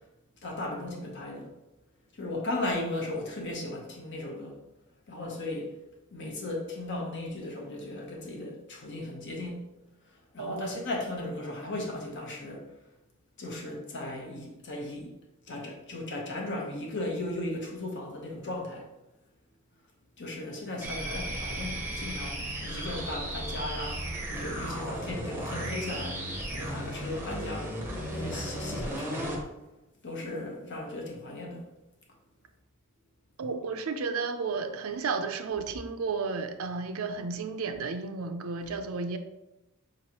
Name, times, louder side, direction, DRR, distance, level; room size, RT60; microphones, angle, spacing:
voice 1, 0.4-1.5 2.1-4.6 5.1-5.7 6.1-9.6 10.3-12.7 13.4-15.1 15.5-18.9 20.2-27.8 28.0-29.4 30.0-31.6, left 2 dB, 55° left, 0 dB, 0.9 m, -36 dB
voice 2, 10.4-10.8 33.4-39.2, right 4 dB, 70° right, 8 dB, 0.4 m, -33 dB
sound 1, 20.8-29.4, right 1 dB, 10° right, 0.7 m, -35 dB
4.9 x 3.1 x 2.9 m, 0.96 s
head